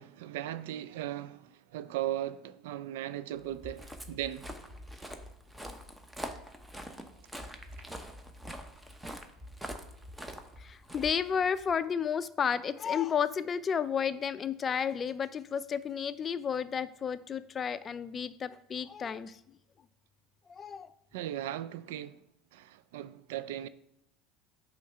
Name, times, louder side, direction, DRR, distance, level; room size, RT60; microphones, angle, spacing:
voice 1, 0.0-4.4 21.1-22.2 22.5-23.7, right 12 dB, 75° right, 0.3 m, -37 dB
Walk footsteps, 3.5-11.7, equal, 10° right, 0.9 m, -44 dB
voice 2, 10.6-19.4 20.5-20.9, left 7 dB, 35° left, 0.4 m, -32 dB
8.3 x 3.2 x 5.6 m
hypercardioid pair, 80°, 0 cm